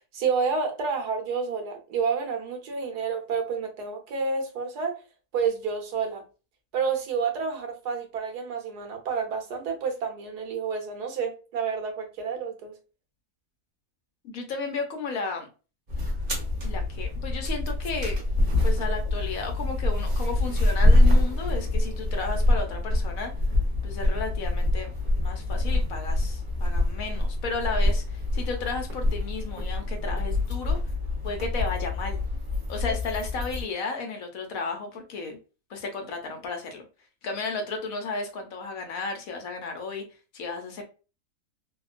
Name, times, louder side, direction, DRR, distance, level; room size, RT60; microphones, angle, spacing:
voice 1, 0.0-4.9 5.3-6.2 6.7-12.7, right 5 dB, 80° right, 1.4 m, -29 dB
voice 2, 14.2-15.5 16.6-18.2 18.6-23.3 23.8-24.9 25.2-30.8 31.2-32.2 32.7-35.4 35.7-36.8 37.2-40.0 40.3-40.8, left 4 dB, 65° left, 1.1 m, -33 dB
sound 1, 15.9-33.6, left 1 dB, 35° right, 1.2 m, -25 dB
3.5 x 2.3 x 2.4 m
omnidirectional pair, 1.7 m